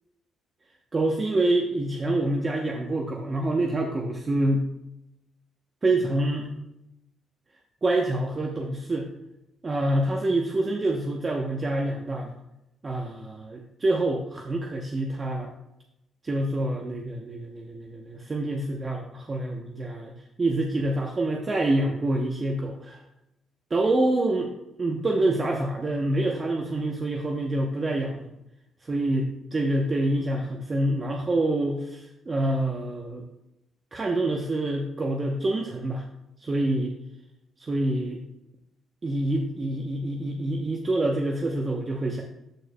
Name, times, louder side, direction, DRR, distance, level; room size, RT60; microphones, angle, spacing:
voice 1, 0.9-4.7 5.8-6.5 7.8-9.1 9.6-12.3 12.8-15.5 16.2-20.1 20.4-23.0 23.7-24.5 24.8-28.2 28.8-33.2 33.9-36.0 36.4-36.9 37.6-38.2 39.0-42.2, right 1 dB, 30° right, 1 dB, 0.8 m, -26 dB
13.0 x 4.7 x 2.2 m, 0.88 s
cardioid pair, 90°, 0 cm